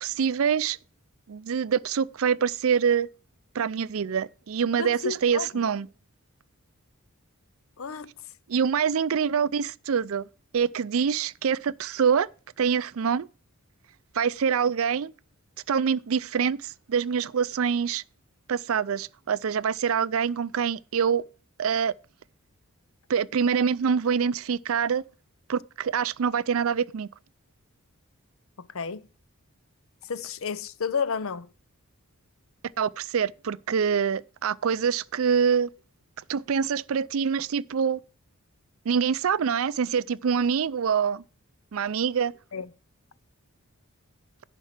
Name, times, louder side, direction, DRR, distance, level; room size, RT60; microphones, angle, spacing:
voice 1, 0.0-0.8 1.3-3.1 3.5-5.9 8.5-10.3 10.5-12.3 12.6-13.3 14.1-15.1 15.7-18.0 18.5-21.2 21.6-21.9 23.1-25.0 25.5-27.1 32.8-35.7 36.3-38.0 38.9-41.2 41.7-42.3, right 7 dB, 70° right, 0.4 m, -25 dB
voice 2, 4.8-5.7 7.8-8.1 28.6-29.0 30.1-31.5 42.5-42.7, left 6 dB, 70° left, 0.6 m, -31 dB
11.0 x 4.5 x 7.3 m
head